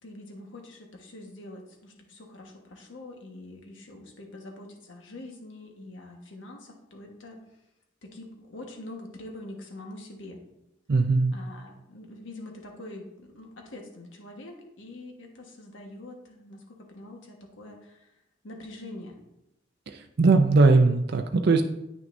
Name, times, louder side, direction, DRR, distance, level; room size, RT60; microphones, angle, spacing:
voice 1, 0.0-7.4 8.0-10.4 11.3-18.1 18.4-19.2, left 1 dB, 85° left, 1 dB, 1.4 m, -44 dB
voice 2, 10.9-11.3 19.9-21.6, right 3 dB, 55° right, 6 dB, 0.5 m, -20 dB
9.1 x 5.9 x 2.6 m, 0.85 s
head